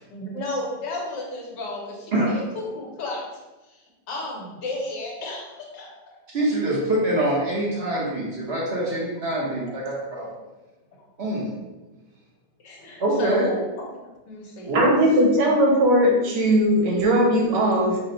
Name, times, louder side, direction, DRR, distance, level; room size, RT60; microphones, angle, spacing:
voice 1, 0.1-3.2 3.6-3.8 4.1-6.2 8.8-8.9 9.4-9.5 12.6-13.7 14.3-14.8, left 2 dB, 85° left, -2 dB, 1.6 m, -33 dB
voice 2, 6.3-10.2 11.2-11.4 13.0-13.4 14.7-14.8, right 1 dB, 45° right, -5 dB, 1.0 m, -24 dB
voice 3, 14.7-18.1, equal, 90° right, 0 dB, 1.4 m, -19 dB
4.3 x 2.2 x 3.8 m, 1.1 s
omnidirectional pair, 1.8 m